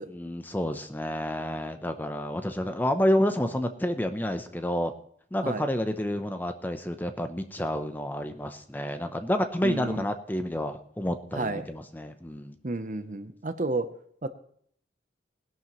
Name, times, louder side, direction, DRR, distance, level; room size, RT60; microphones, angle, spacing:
voice 1, 0.1-4.9 5.3-12.5, equal, 10° left, 8 dB, 0.7 m, -29 dB
voice 2, 9.6-10.1 11.3-11.7 12.6-13.9 14.2-14.3, right 2 dB, 45° right, 11 dB, 0.7 m, -31 dB
20.0 x 11.5 x 3.1 m, 0.63 s
head